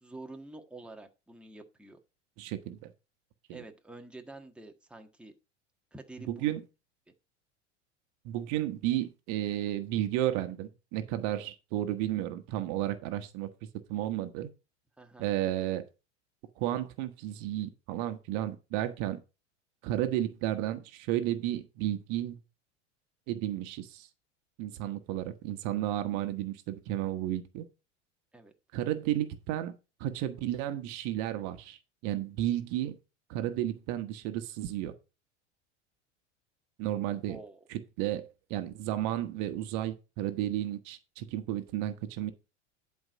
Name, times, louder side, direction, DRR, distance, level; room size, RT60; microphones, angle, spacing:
voice 1, 0.0-2.0 3.5-5.3 5.9-6.5 15.0-15.3 28.3-28.5 37.2-37.6, right 2 dB, 5° right, 1.5 m, -48 dB
voice 2, 2.4-2.9 3.5-3.6 6.3-6.6 8.2-13.5 13.9-14.5 15.2-15.8 16.6-19.2 19.8-22.4 23.3-24.1 24.6-27.7 28.7-31.8 32.0-32.9 33.3-34.9 36.8-37.4 37.7-42.3, right 13 dB, 55° right, 1.2 m, -32 dB
11.0 x 4.7 x 5.2 m
hypercardioid pair, 95°, 36 cm